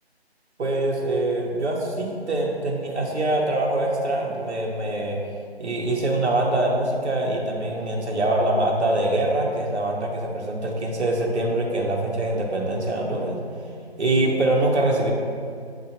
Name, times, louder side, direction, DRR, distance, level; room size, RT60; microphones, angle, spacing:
voice 1, 0.6-5.2 5.6-13.4 14.0-15.1, right 1 dB, 85° right, -1 dB, 0.8 m, -24 dB
6.7 x 2.4 x 2.8 m, 2.3 s
figure-of-eight pair, 175°, 33 cm